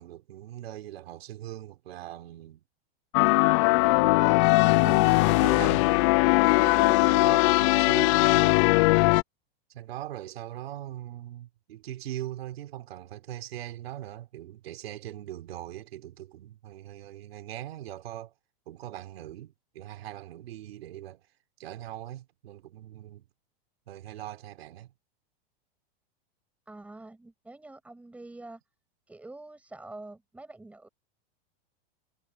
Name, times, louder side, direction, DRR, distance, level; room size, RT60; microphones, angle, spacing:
voice 1, 0.0-2.6 3.5-4.1 4.8-5.9 6.6-8.6 9.7-18.3 18.7-21.2 21.6-23.3 23.9-24.9, right 13 dB, 80° right, 4.0 m, -41 dB
sound 1, 3.1-9.2, left 23 dB, 30° left, 0.4 m, -20 dB
voice 2, 26.7-28.6 29.1-30.9, right 2 dB, 5° right, 7.8 m, -46 dB
supercardioid pair, 165°, 30 cm